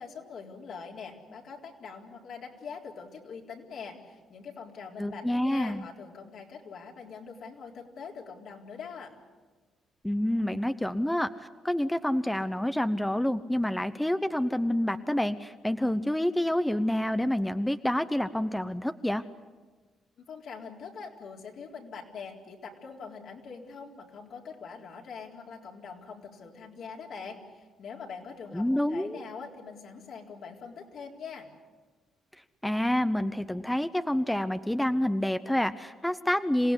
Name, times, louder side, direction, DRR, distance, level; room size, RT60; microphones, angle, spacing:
voice 1, 0.0-9.1 20.3-31.5, left 5 dB, 70° left, 0 dB, 4.1 m, -43 dB
voice 2, 5.0-5.8 10.0-19.2 28.5-29.2 32.6-36.7, left 1 dB, 5° left, 11 dB, 0.8 m, -28 dB
27.0 x 17.5 x 9.8 m, 1.4 s
cardioid pair, 90°, 0 cm